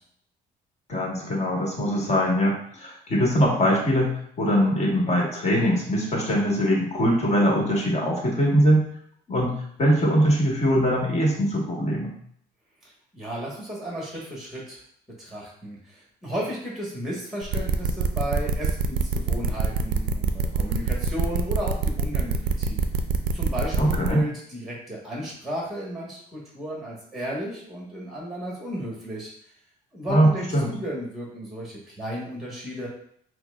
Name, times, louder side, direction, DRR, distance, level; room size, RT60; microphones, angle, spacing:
voice 1, 0.9-8.9 9.3-12.1 23.8-24.2 30.1-30.7, equal, 40° left, -2 dB, 1.3 m, -22 dB
voice 2, 13.1-14.8 15.2-22.8 23.3-29.3 29.9-32.9, equal, ahead, -4 dB, 1.2 m, -34 dB
sound 1, 17.4-24.1, right 5 dB, 60° right, 0.4 m, -24 dB
5.6 x 2.1 x 2.3 m, 0.66 s
cardioid pair, 110°, 17 cm